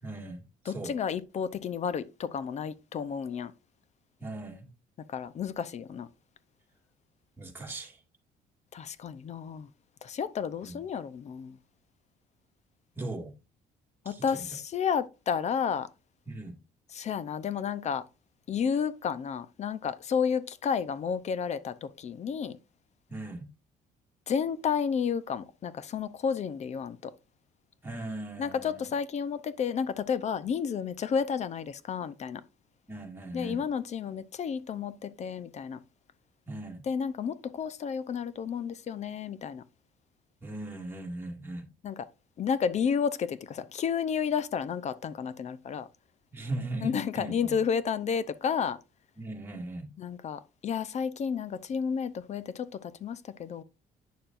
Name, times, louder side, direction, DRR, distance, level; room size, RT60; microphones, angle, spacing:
voice 1, 0.0-0.9 4.2-4.7 7.4-8.0 10.6-10.8 13.0-13.3 14.1-14.6 16.3-16.6 23.1-23.5 27.8-28.9 32.9-33.6 36.5-36.8 40.4-41.7 46.3-47.6 49.2-49.9, right 2 dB, 10° right, 2.0 m, -39 dB
voice 2, 0.7-3.5 5.1-6.1 8.7-9.7 10.0-11.6 14.1-15.9 16.9-18.0 18.5-22.6 24.3-27.1 28.4-32.4 33.3-35.8 36.9-39.6 41.8-42.1 42.4-45.9 46.8-48.8 50.0-53.6, left 7 dB, 40° left, 0.6 m, -31 dB
9.2 x 6.7 x 2.5 m
cardioid pair, 110°, 17 cm